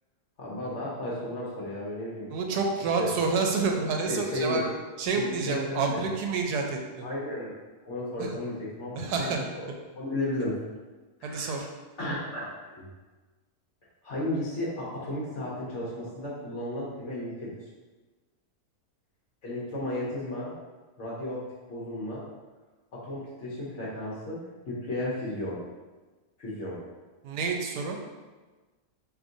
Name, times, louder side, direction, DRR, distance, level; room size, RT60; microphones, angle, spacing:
voice 1, 0.4-2.6 3.0-3.1 3.7-3.8 4.1-4.6 5.1-6.0 7.0-7.5 7.8-9.7 10.0-10.6 11.2-11.5 12.0-12.9 14.0-17.5 19.4-20.5 21.0-22.2 22.9-25.6 26.4-26.8, left 1 dB, 55° left, -5 dB, 1.0 m, -34 dB
voice 2, 2.3-4.7 5.0-7.1 8.2-8.3 8.9-9.4 11.2-11.7 27.2-28.0, right 4 dB, 80° right, 2 dB, 1.1 m, -28 dB
4.8 x 2.9 x 2.6 m, 1.3 s
omnidirectional pair, 1.7 m